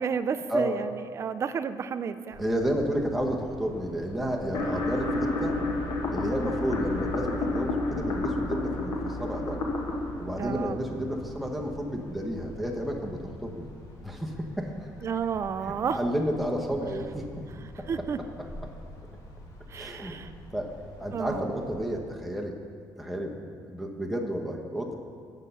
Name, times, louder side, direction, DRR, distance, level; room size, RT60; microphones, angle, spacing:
voice 1, 0.0-2.4 10.4-10.8 15.0-16.0 17.6-18.2 19.7-20.3 21.1-21.5, right 7 dB, 35° right, 12 dB, 0.3 m, -31 dB
sound 1, 2.3-22.0, equal, 45° left, 1.5 m, -47 dB
voice 2, 2.4-5.6 6.1-9.6 10.2-13.7 14.0-14.7 15.6-17.5 17.8-18.3 18.6-18.7 19.7-20.2 20.5-20.7 21.0-22.6 23.0-24.9, equal, ahead, 0 dB, 0.9 m, -31 dB
sound 2, 4.5-11.6, left 2 dB, 80° left, 1.3 m, -30 dB
8.2 x 5.4 x 6.7 m, 2.1 s
cardioid pair, 145°, 8 cm